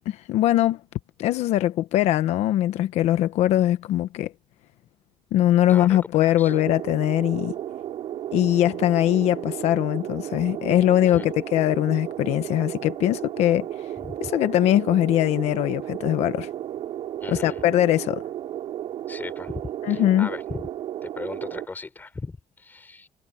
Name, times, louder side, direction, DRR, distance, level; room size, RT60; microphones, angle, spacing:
voice 1, 0.1-0.8 1.2-4.3 5.3-7.5 8.3-13.7 14.2-16.5 17.3-18.2 19.8-20.3, left 13 dB, 90° left, 1.0 m, -21 dB
voice 2, 5.7-6.5 11.1-11.3 14.0-14.3 17.2-17.6 19.1-19.6 19.9-20.6 21.0-23.1, left 3 dB, 15° left, 5.6 m, -37 dB
sound 1, 6.5-21.7, right 11 dB, 65° right, 6.3 m, -34 dB
cardioid pair, 165°, 11 cm